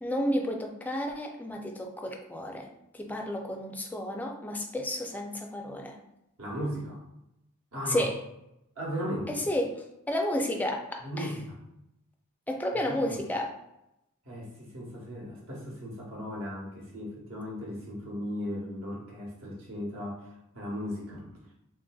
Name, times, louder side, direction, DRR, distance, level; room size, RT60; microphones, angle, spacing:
voice 1, 0.0-2.7 2.9-6.0 7.9-8.1 9.3-9.8 10.1-11.3 12.5-13.5, left 1 dB, 10° left, 2 dB, 0.3 m, -31 dB
voice 2, 6.4-7.0 7.7-8.1 8.8-9.4 11.0-11.6 12.9-13.2 14.2-21.3, equal, 65° right, -3 dB, 1.0 m, -37 dB
3.4 x 2.5 x 2.3 m, 0.85 s
head